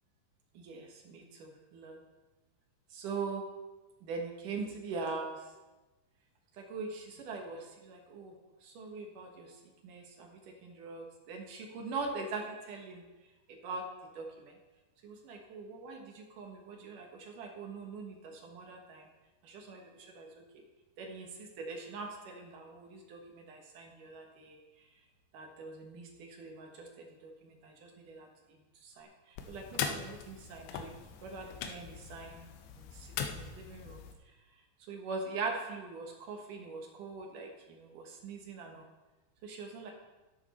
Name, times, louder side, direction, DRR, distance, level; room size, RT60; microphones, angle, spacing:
voice 1, 0.5-2.0 2.9-3.4 4.0-5.4 6.6-8.3 8.6-9.5 9.8-13.0 13.6-13.9 14.2-14.5 15.0-19.0 19.4-19.8 20.1-20.3 21.0-24.6 25.3-28.3 28.8-29.1 29.5-30.9 31.2-32.5 32.7-34.0 34.9-38.8 39.4-39.9, right 4 dB, 60° right, 1 dB, 2.3 m, -42 dB
sound 1, 29.4-34.1, left 7 dB, 75° left, 2.9 m, -41 dB
13.5 x 10.5 x 4.2 m, 1.2 s
omnidirectional pair, 5.2 m